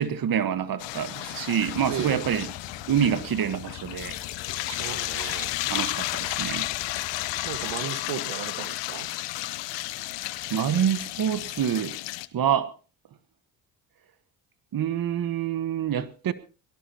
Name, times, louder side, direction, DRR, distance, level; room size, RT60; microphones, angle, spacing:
voice 1, 0.0-2.5 2.9-4.2 5.7-6.7 10.5-12.0 12.3-12.7 14.7-16.3, right 9 dB, 55° right, 1.4 m, -26 dB
sound 1, 0.8-12.3, left 17 dB, 80° left, 1.0 m, -33 dB
sound 2, 1.6-7.8, left 9 dB, 50° left, 1.5 m, -45 dB
voice 2, 1.9-2.3 4.6-5.6 7.4-9.1, right 11 dB, 85° right, 1.7 m, -35 dB
22.5 x 18.5 x 2.9 m
supercardioid pair, 80°, 43 cm